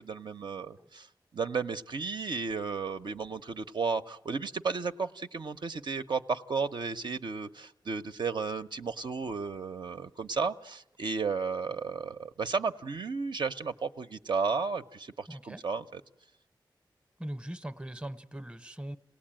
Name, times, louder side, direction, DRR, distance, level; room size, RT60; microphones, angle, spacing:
voice 1, 0.1-1.1 1.3-16.0, right 5 dB, 70° right, 0.8 m, -33 dB
voice 2, 15.3-15.6 17.2-19.0, right 1 dB, 10° right, 0.8 m, -40 dB
27.5 x 18.0 x 8.9 m
wide cardioid pair, 85°, 8 cm